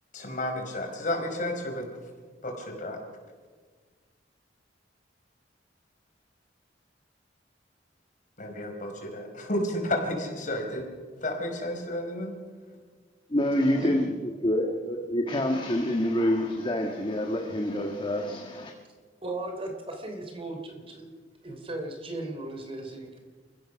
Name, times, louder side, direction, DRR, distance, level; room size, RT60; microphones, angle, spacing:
voice 1, 0.1-1.8 2.4-3.0 8.4-10.8 11.2-12.3, left 1 dB, 45° left, 4.9 m, -31 dB
voice 2, 13.3-14.1 14.4-18.7, left 1 dB, 30° left, 1.5 m, -27 dB
voice 3, 19.2-21.1 21.4-23.2, right 2 dB, 30° right, 3.3 m, -36 dB
28.5 x 16.0 x 6.3 m
head